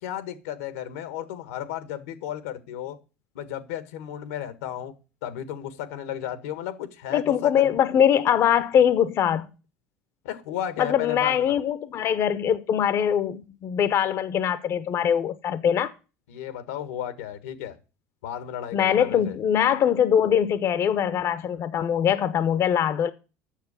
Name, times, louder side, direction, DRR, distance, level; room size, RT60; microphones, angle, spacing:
voice 1, 0.0-3.0 3.3-4.9 5.2-7.8 10.2-11.6 16.3-17.8 18.2-19.4, left 11 dB, 85° left, 1.5 m, -34 dB
voice 2, 7.1-9.5 10.8-15.9 18.7-23.1, left 9 dB, 45° left, 0.8 m, -22 dB
8.3 x 6.6 x 8.1 m
supercardioid pair, 110°, 7 cm